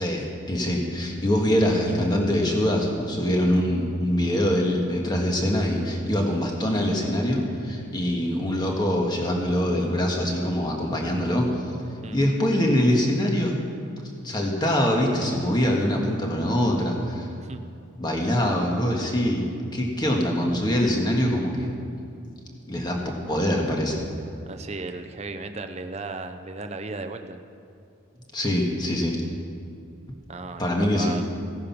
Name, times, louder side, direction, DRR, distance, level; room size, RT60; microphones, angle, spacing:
voice 1, 0.0-11.7 12.1-13.6 14.2-17.3 18.0-21.7 22.7-23.0 23.3-24.0 28.3-29.2 30.6-31.2, equal, 20° left, 0 dB, 1.7 m, -24 dB
voice 2, 24.4-27.4 30.3-31.3, right 3 dB, 30° right, 7 dB, 0.6 m, -35 dB
16.0 x 10.5 x 5.9 m, 2.5 s
head